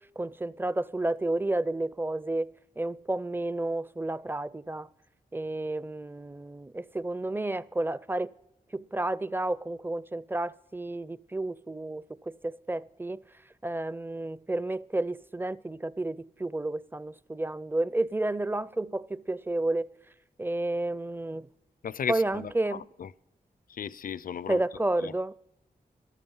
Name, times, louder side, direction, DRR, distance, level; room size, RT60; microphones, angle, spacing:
voice 1, 0.2-2.5 2.8-4.9 5.3-8.3 8.7-13.2 13.6-19.9 20.4-21.5 22.1-22.9 24.5-25.4, right 2 dB, 15° right, 0.5 m, -31 dB
voice 2, 21.8-23.1 23.7-24.6 25.0-25.4, left 7 dB, 65° left, 0.5 m, -36 dB
13.0 x 12.0 x 5.5 m
cardioid pair, 50°, 16 cm